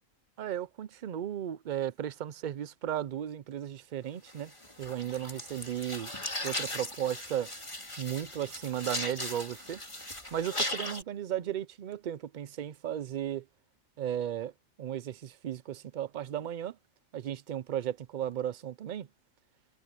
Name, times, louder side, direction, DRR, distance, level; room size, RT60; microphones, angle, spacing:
voice 1, 0.4-4.5 4.8-6.1 6.4-7.5 8.0-13.4 14.0-14.5 14.8-16.8 17.1-19.1, right 10 dB, 55° right, 0.5 m, -35 dB
sound 1, 4.3-11.0, left 1 dB, 25° left, 3.4 m, -38 dB
omnidirectional pair, 1.3 m